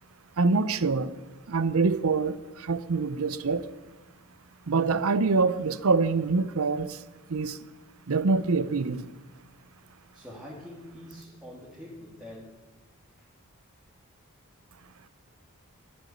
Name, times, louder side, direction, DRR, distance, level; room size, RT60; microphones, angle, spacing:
voice 1, 0.4-1.1 1.5-3.7 4.7-7.0 7.3-7.6 8.1-9.1, right 4 dB, 70° right, 15 dB, 0.6 m, -25 dB
voice 2, 10.1-12.6 13.2-13.3, left 1 dB, 5° right, -5 dB, 2.1 m, -45 dB
12.5 x 7.9 x 8.6 m, 1.1 s
head